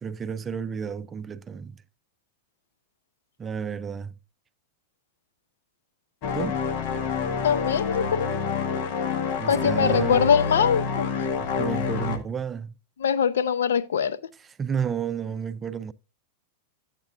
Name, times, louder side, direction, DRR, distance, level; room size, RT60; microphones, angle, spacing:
voice 1, 0.0-1.8 3.4-4.1 6.3-6.6 9.4-10.2 11.4-12.7 14.6-15.9, right 7 dB, 20° right, 0.5 m, -31 dB
sound 1, 6.2-12.2, left 5 dB, 55° left, 1.4 m, -27 dB
voice 2, 7.4-8.3 9.5-11.1 13.0-14.2, left 7 dB, 85° left, 0.7 m, -22 dB
12.0 x 8.2 x 2.5 m
hypercardioid pair, 120°, 0 cm